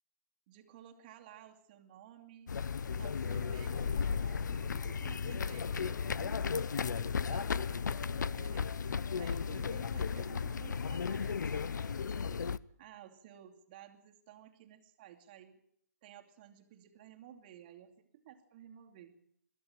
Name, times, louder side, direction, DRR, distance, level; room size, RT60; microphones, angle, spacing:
voice 1, 0.5-2.6 2.9-6.6 6.9-8.8 9.2-12.4 12.8-15.6 16.0-19.2, right 10 dB, 30° right, 4 dB, 2.6 m, -55 dB
sound 1, 2.5-12.6, left 6 dB, 80° left, 0.8 m, -35 dB
23.0 x 14.0 x 8.9 m, 0.69 s
hypercardioid pair, 165°, 10 cm